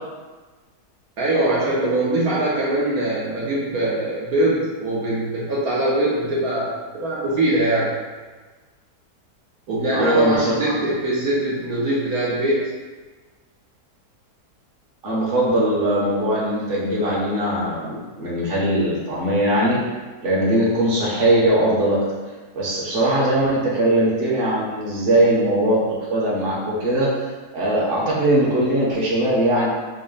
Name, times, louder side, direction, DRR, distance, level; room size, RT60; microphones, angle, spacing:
voice 1, 1.2-7.9 9.7-12.7, right 1 dB, 70° right, -6 dB, 1.2 m, -22 dB
voice 2, 9.9-10.5 15.0-19.8 20.2-22.0 22.5-25.8 26.1-27.1 27.5-29.7, right 1 dB, 40° right, -6 dB, 1.1 m, -20 dB
5.2 x 2.1 x 3.9 m, 1.3 s
omnidirectional pair, 1.7 m